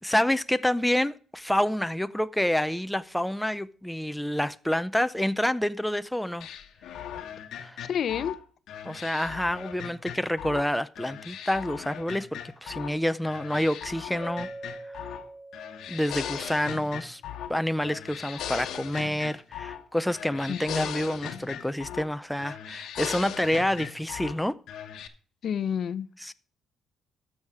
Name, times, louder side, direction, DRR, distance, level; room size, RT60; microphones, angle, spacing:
voice 1, 0.0-6.5 7.6-7.8 8.8-14.5 15.0-15.1 15.9-17.2 17.5-24.6 26.2-26.3, left 1 dB, 5° left, 0.5 m, -28 dB
sound 1, 6.4-10.7 11.0-12.9 13.2-15.3 15.5-17.6 17.8-19.8 20.1-22.1 22.4-24.4 24.7-25.1, left 9 dB, 80° left, 1.0 m, -38 dB
voice 2, 7.8-8.4 20.5-20.9 25.4-26.1, left 8 dB, 60° left, 0.6 m, -29 dB
Keyboard (musical), 14.2-16.6, right 1 dB, 45° right, 3.0 m, -43 dB
13.0 x 6.5 x 4.7 m
cardioid pair, 90°, 0 cm